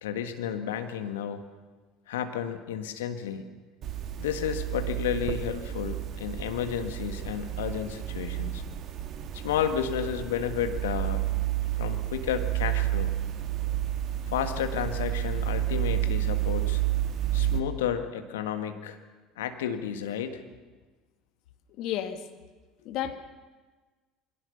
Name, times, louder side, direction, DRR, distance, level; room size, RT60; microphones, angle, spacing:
voice 1, 0.0-1.4 2.1-3.4 4.2-8.6 9.3-11.2 11.8-13.1 14.3-16.8 17.3-19.0 19.4-20.4, left 9 dB, 75° left, 8 dB, 1.6 m, -32 dB
sound 1, 3.8-17.6, right 13 dB, 50° right, 1.7 m, -30 dB
voice 2, 21.8-22.2 22.8-23.1, left 11 dB, 60° left, 8 dB, 1.7 m, -31 dB
22.5 x 17.5 x 6.8 m, 1.3 s
figure-of-eight pair, 65°, 0 cm